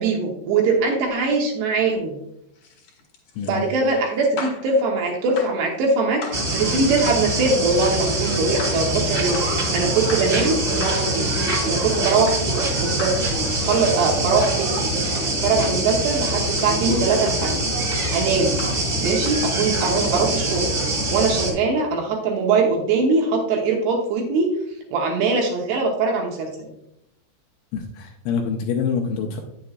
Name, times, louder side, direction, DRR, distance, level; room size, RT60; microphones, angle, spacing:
voice 1, 0.0-2.2 3.4-11.3 11.6-13.1 13.6-14.9 15.4-17.6 18.1-18.6 19.0-20.7 21.1-24.5 24.9-26.7, right 4 dB, 75° right, 1 dB, 2.5 m, -22 dB
sound 1, 2.6-4.7 5.4-5.6 6.2-6.5 7.0-7.3 7.9-8.1 8.6-8.9 9.3-9.6 10.1-10.4 10.8-11.1 11.5-11.8 12.3-12.5 13.0-13.3 13.7-14.0 14.4-14.6 15.1-15.3 15.9-16.1 16.6-16.8 17.3-17.5 17.9-18.1 18.6-18.8 19.3-19.5, left 4 dB, 60° left, 1.9 m, -37 dB
sound 2, 6.3-21.5, right 1 dB, 45° right, 1.5 m, -24 dB
voice 2, 27.7-29.4, left 6 dB, 85° left, 2 dB, 2.7 m, -26 dB
9.2 x 7.5 x 2.4 m, 0.83 s
omnidirectional pair, 5.9 m